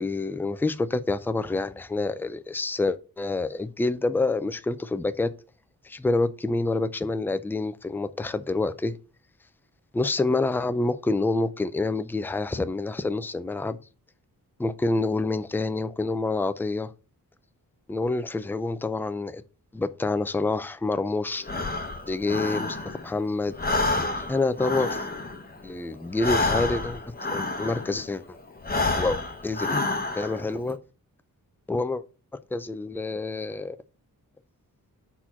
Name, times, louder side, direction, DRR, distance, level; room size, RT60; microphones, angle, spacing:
voice 1, 0.0-5.3 5.8-8.9 9.9-13.8 14.6-16.9 17.9-19.4 19.7-21.5 22.1-22.8 23.0-23.5 24.3-25.0 25.6-27.0 27.3-28.2 29.0-29.8 30.2-30.8 31.7-32.0 32.5-33.8, left 3 dB, 5° left, 0.4 m, -27 dB
Breathing, 21.4-23.2 23.5-28.1 28.6-30.5, left 2 dB, 25° left, 0.9 m, -29 dB
4.4 x 4.3 x 5.7 m
wide cardioid pair, 110°, 36 cm